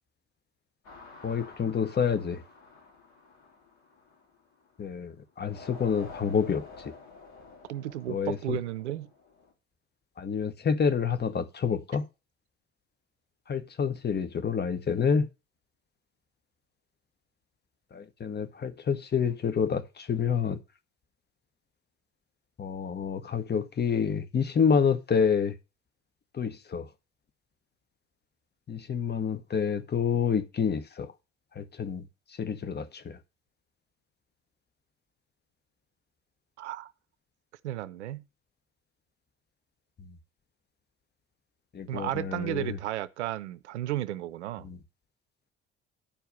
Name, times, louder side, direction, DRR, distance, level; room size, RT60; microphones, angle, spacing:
sound 1, 0.8-4.8 5.4-9.5, left 4 dB, 55° left, 3.2 m, -50 dB
voice 1, 1.2-2.4 4.8-6.9 8.1-8.6 10.2-12.1 13.5-15.3 17.9-20.6 22.6-25.5 26.3-26.9 28.7-31.1 31.6-32.1 32.4-33.2 41.7-42.8 44.6-44.8, left 6 dB, 30° left, 1.0 m, -28 dB
voice 2, 7.7-9.1 36.6-36.9 37.6-38.2 41.9-44.7, right 13 dB, 75° right, 0.6 m, -33 dB
10.0 x 4.6 x 6.7 m
figure-of-eight pair, 50°, 34 cm